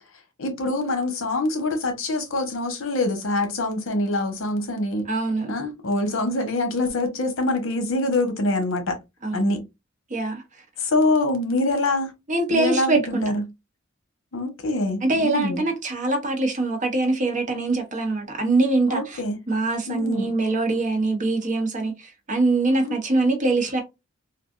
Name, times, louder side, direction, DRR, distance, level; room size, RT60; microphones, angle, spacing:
voice 1, 0.4-5.1 5.5-9.0 9.3-9.6 10.8-12.1 12.5-13.4 14.3-15.6 18.9-19.4 19.9-20.3 22.8-22.9, left 2 dB, 75° left, 0.9 m, -25 dB
voice 2, 5.1-5.5 9.2-9.5 10.1-10.4 12.3-13.2 15.0-19.2 19.5-23.8, right 2 dB, 40° right, 0.8 m, -23 dB
3.4 x 2.3 x 2.4 m
head